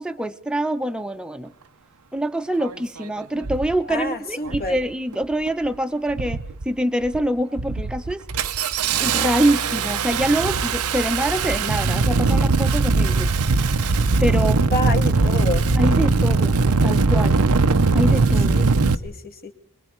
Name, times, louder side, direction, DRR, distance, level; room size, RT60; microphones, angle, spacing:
voice 1, 0.0-1.5 2.1-8.2 9.0-13.3 14.2-14.6 15.8-17.4 17.9-18.6, right 1 dB, 5° right, 7 dB, 0.9 m, -25 dB
Engine starting, 2.6-2.7 3.4-3.7 4.4-4.8 5.1-5.7 6.1-6.6 7.0-7.2 7.6-18.9, right 3 dB, 90° right, 0.8 m, -20 dB
voice 2, 3.9-4.8 14.7-15.7 18.5-18.7 19.0-19.5, left 2 dB, 45° left, 5 dB, 2.3 m, -28 dB
28.0 x 21.5 x 4.6 m, 0.71 s
head